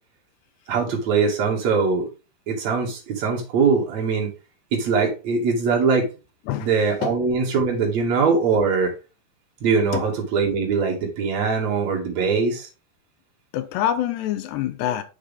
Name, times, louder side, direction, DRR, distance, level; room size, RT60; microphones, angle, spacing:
voice 1, 0.7-2.1 2.5-4.3 4.7-6.1 6.6-8.9 9.6-12.7, right 5 dB, 50° right, 3.0 m, -22 dB
voice 2, 13.5-15.0, left 11 dB, 90° left, 3.0 m, -25 dB
7.8 x 6.6 x 3.5 m
omnidirectional pair, 4.7 m